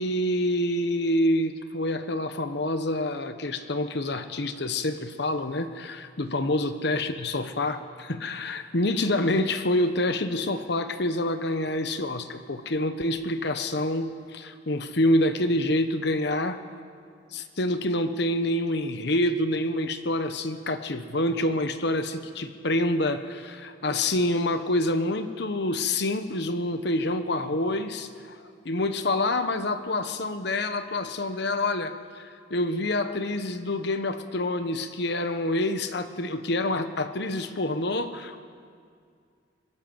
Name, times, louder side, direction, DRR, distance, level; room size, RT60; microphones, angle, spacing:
voice 1, 0.0-16.6 17.3-38.4, left 1 dB, 60° left, 9 dB, 1.1 m, -27 dB
22.0 x 21.0 x 7.9 m, 2.2 s
head